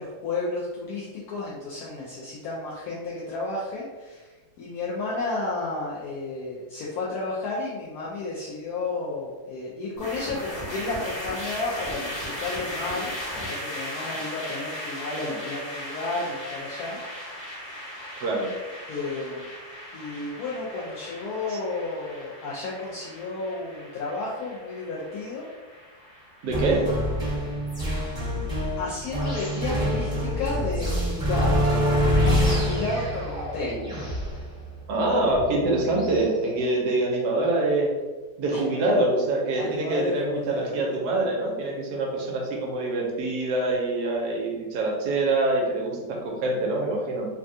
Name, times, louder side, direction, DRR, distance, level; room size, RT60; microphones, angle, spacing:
voice 1, 0.0-13.1 13.4-17.0 18.9-19.5 19.9-25.4 26.5-27.1 28.8-34.1 38.5-38.6 39.6-40.8, left 3 dB, 70° left, -5 dB, 0.9 m, -32 dB
sound 1, 10.0-29.2, equal, 25° left, 1.1 m, -38 dB
voice 2, 18.2-18.5 21.5-21.6 26.4-26.8 34.9-37.9 38.4-47.3, right 2 dB, 70° right, -1 dB, 1.1 m, -25 dB
sound 2, 26.5-36.2, equal, 5° right, 1.0 m, -26 dB
3.3 x 2.2 x 2.6 m, 1.3 s
omnidirectional pair, 2.0 m